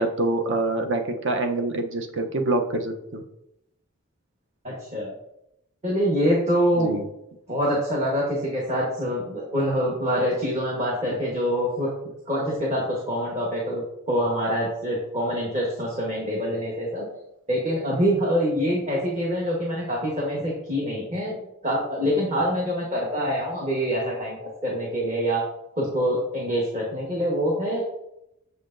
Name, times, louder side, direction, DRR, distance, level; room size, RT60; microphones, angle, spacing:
voice 1, 0.0-3.2 6.8-7.1, right 2 dB, 55° right, 5 dB, 0.7 m, -25 dB
voice 2, 4.6-5.1 5.8-7.0 7.5-11.9 12.3-17.1 17.5-21.4 21.6-25.4 25.8-27.8, equal, 30° right, -3 dB, 1.3 m, -25 dB
6.9 x 6.5 x 2.6 m, 0.84 s
head